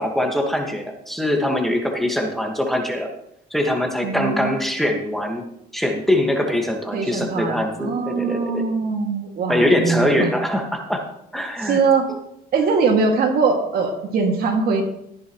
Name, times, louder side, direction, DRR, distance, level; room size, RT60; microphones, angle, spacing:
voice 1, 0.0-3.1 3.5-5.5 5.7-8.7 9.5-11.0 11.3-11.8, left 1 dB, ahead, 1 dB, 1.7 m, -22 dB
voice 2, 4.0-4.5 6.9-10.3 11.6-12.1 12.5-14.8, right 4 dB, 65° right, 2 dB, 2.3 m, -21 dB
14.5 x 10.0 x 3.1 m, 0.78 s
cardioid pair, 110°, 17 cm